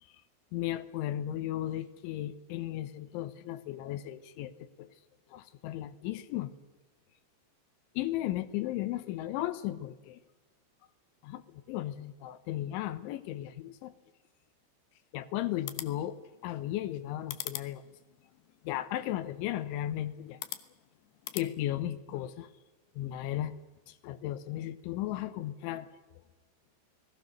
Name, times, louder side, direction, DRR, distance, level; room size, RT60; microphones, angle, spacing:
voice 1, 0.5-4.5 4.8-4.9 5.3-6.5 8.0-10.2 11.2-13.9 15.1-17.8 18.6-20.4 21.3-22.5 23.0-23.5 23.9-25.9, left 13 dB, 90° left, 11 dB, 3.4 m, -35 dB
sound 1, 15.5-21.5, left 14 dB, 70° left, 2.9 m, -45 dB
29.5 x 20.0 x 6.5 m, 1.2 s
omnidirectional pair, 5.3 m